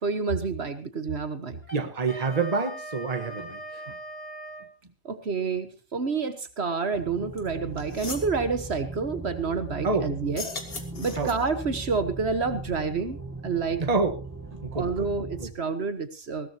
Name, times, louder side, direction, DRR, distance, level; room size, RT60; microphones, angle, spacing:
voice 1, 0.0-1.6 5.0-10.5 11.0-13.8 14.7-16.5, right 4 dB, 60° right, 10 dB, 1.6 m, -29 dB
Wind instrument woodwind instrument, 1.6-4.7, right 1 dB, 35° left, 4.1 m, -40 dB
voice 2, 1.7-3.6 9.8-10.1 11.2-11.3 13.8-14.1 14.5-15.1 15.4-15.5, right 4 dB, 30° right, 7 dB, 1.5 m, -27 dB
sound 1, 6.9-15.5, right 3 dB, 15° right, 1.5 m, -39 dB
sound 2, 7.4-7.5 7.8-8.3 10.2-11.6, left 3 dB, 50° left, 2.1 m, -37 dB
20.5 x 16.5 x 2.9 m, 0.30 s
omnidirectional pair, 1.3 m